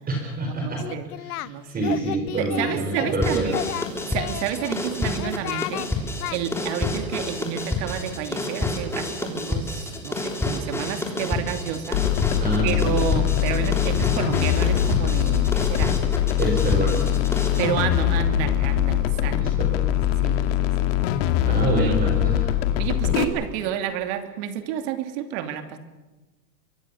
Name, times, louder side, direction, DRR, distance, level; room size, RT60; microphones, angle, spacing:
voice 1, 0.1-0.8 1.2-3.5 12.4-12.9 16.4-17.1 19.2-19.8 21.4-22.6 23.0-23.2, right 2 dB, 20° right, 2 dB, 4.7 m, -27 dB
voice 2, 0.6-1.1 1.4-1.8 2.4-3.6 4.1-5.9 6.3-12.1 12.6-16.0 16.7-16.8 17.6-19.4 20.2-21.3 21.7-22.0 22.8-25.8, right 9 dB, 50° right, 8 dB, 2.9 m, -30 dB
Singing, 0.8-1.5 1.8-3.2 3.5-4.8 5.2-5.9 6.2-6.4, left 15 dB, 70° left, 1.1 m, -32 dB
sound 1, 3.2-17.7, left 2 dB, 5° left, 3.6 m, -29 dB
sound 2, 11.9-23.2, left 12 dB, 50° left, 2.3 m, -22 dB
24.5 x 22.5 x 7.2 m, 1.1 s
supercardioid pair, 140°, 46 cm